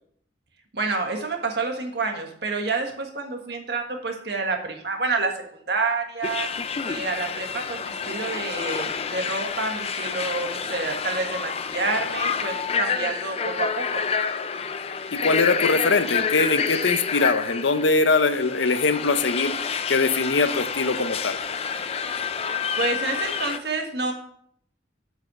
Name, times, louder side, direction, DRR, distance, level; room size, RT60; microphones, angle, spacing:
voice 1, 0.7-5.3 5.7-6.5 6.8-14.0 22.7-24.1, right 3 dB, 60° right, 3 dB, 1.6 m, -28 dB
sound 1, 6.2-23.6, left 6 dB, 35° left, 0.5 m, -28 dB
voice 2, 15.1-19.5 19.9-21.4, left 3 dB, 85° left, 10 dB, 0.7 m, -22 dB
7.9 x 5.5 x 6.2 m, 0.67 s
head